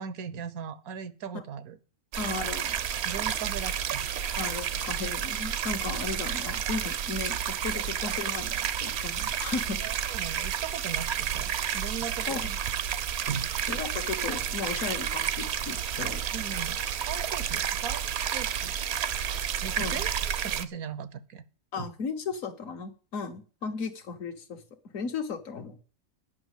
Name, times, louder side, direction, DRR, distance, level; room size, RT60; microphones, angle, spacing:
voice 1, 0.0-1.8 3.0-4.0 9.8-12.4 13.3-13.5 16.0-18.7 19.6-20.1 20.4-21.4 21.8-21.9, right 7 dB, 85° right, 14 dB, 1.3 m, -38 dB
sound 1, 2.1-20.6, right 9 dB, 60° right, 0.7 m, -31 dB
voice 2, 2.2-2.8 4.4-9.8 12.3-12.5 13.7-16.2 19.8-20.0 21.7-24.6 24.9-25.8, left 5 dB, 65° left, 8 dB, 1.5 m, -35 dB
9.3 x 5.8 x 8.0 m, 0.39 s
omnidirectional pair, 1.5 m